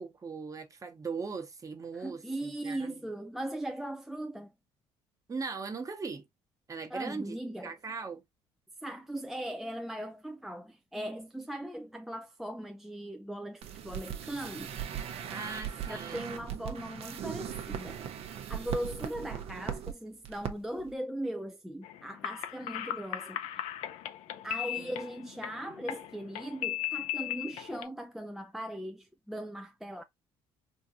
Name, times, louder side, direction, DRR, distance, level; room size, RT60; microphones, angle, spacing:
voice 1, 0.0-3.0 5.3-6.3 6.7-8.2 15.3-16.6 24.8-24.9, right 4 dB, 30° right, 1.1 m, -40 dB
voice 2, 1.9-4.5 6.9-7.7 8.8-14.7 15.9-18.0 18.5-23.7 24.4-30.0, right 1 dB, 5° right, 0.4 m, -39 dB
sound 1, 13.6-19.9 20.2-20.5 20.8-20.9, right 9 dB, 60° right, 0.8 m, -38 dB
sound 2, 21.8-27.8, left 13 dB, 75° left, 0.5 m, -37 dB
3.6 x 2.6 x 2.8 m
supercardioid pair, 85°, 11 cm